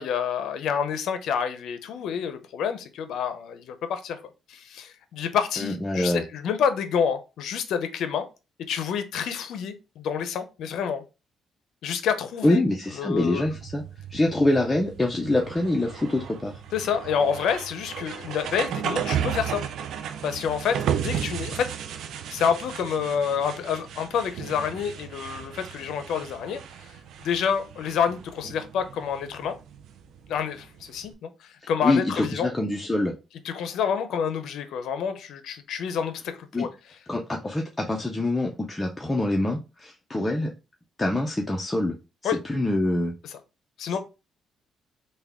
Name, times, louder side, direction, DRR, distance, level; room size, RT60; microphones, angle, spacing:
voice 1, 0.0-4.2 4.5-8.3 8.7-11.0 11.8-12.6 13.0-13.4 16.7-19.6 20.2-21.7 22.3-26.9 27.2-29.5 30.3-32.5 33.4-36.7 42.2-42.4 43.8-44.0, left 7 dB, 80° left, 9 dB, 0.5 m, -28 dB
voice 2, 5.6-6.2 12.4-13.8 14.1-16.6 31.6-33.1 36.5-36.7 37.1-40.5 41.0-42.0 42.2-43.1, left 2 dB, 15° left, 0 dB, 0.5 m, -25 dB
sound 1, 13.2-31.1, right 9 dB, 75° right, 0.4 m, -35 dB
3.4 x 2.2 x 3.4 m, 0.29 s
cardioid pair, 90°, 0 cm